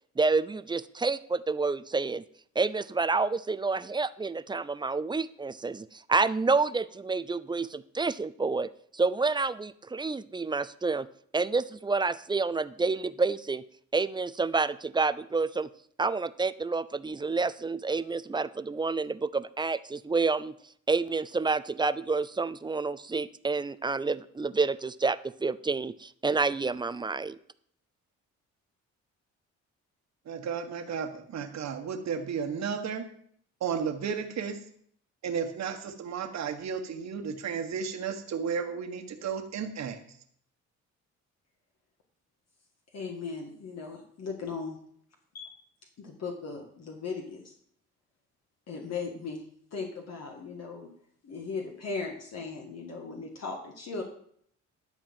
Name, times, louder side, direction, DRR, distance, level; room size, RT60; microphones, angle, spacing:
voice 1, 0.2-2.2 2.6-11.1 11.3-13.6 13.9-15.7 16.0-20.5 20.9-27.4, right 4 dB, 15° right, 15 dB, 0.4 m, -29 dB
voice 2, 30.2-33.1 33.6-34.6 35.2-40.0, right 6 dB, 60° right, 5 dB, 1.5 m, -33 dB
voice 3, 42.9-44.8 45.3-45.5 46.0-47.5 48.7-49.4 49.7-50.9 51.2-54.0, left 4 dB, 55° left, 1 dB, 1.8 m, -37 dB
11.5 x 4.4 x 7.5 m, 0.63 s
cardioid pair, 90°, 30 cm